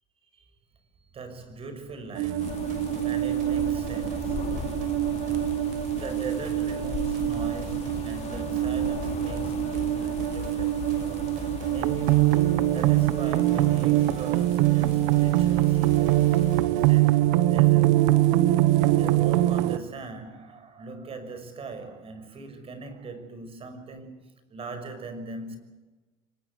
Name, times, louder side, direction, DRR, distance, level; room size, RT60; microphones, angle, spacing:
voice 1, 1.1-10.8 11.7-16.3 16.7-18.2 18.9-25.6, right 3 dB, 40° right, 5.9 m, -40 dB
sound 1, 2.2-17.2, right 3 dB, 60° right, 6.4 m, -44 dB
The Stranger - Theme (Stranger Things Inspired), 2.2-19.8, right 15 dB, 80° right, 1.2 m, -23 dB
sound 2, 2.4-16.6, left 9 dB, 50° left, 2.5 m, -38 dB
24.5 x 21.5 x 8.3 m
supercardioid pair, 90°, 15 cm